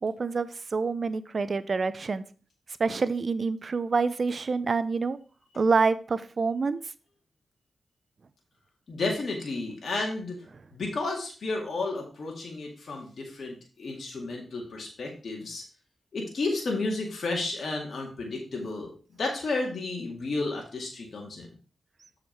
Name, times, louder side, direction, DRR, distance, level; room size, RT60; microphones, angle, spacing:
voice 1, 0.0-2.2 2.8-5.2 5.6-6.8, right 4 dB, 55° right, 15 dB, 0.6 m, -27 dB
voice 2, 8.9-10.3 10.7-15.6 16.1-18.9 19.2-21.5, left 3 dB, 70° left, -1 dB, 2.0 m, -32 dB
7.1 x 4.9 x 4.5 m, 0.39 s
supercardioid pair, 45°, 0 cm